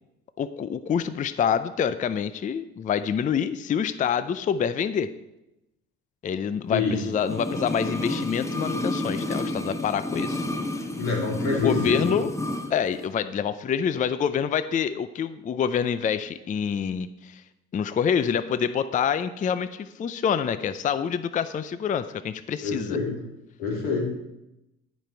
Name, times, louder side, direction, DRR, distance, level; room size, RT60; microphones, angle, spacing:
voice 1, 0.4-5.1 6.2-10.4 11.5-12.3 12.7-17.4 17.7-23.0, left 7 dB, 25° left, 13 dB, 0.4 m, -26 dB
voice 2, 6.7-7.0 11.0-12.0 22.6-23.2 23.6-24.1, left 4 dB, 90° left, -2 dB, 3.2 m, -26 dB
sound 1, 7.2-12.7 13.0-13.1, left 1 dB, 10° left, 1.0 m, -30 dB
15.0 x 5.2 x 4.5 m, 0.92 s
supercardioid pair, 90°, 31 cm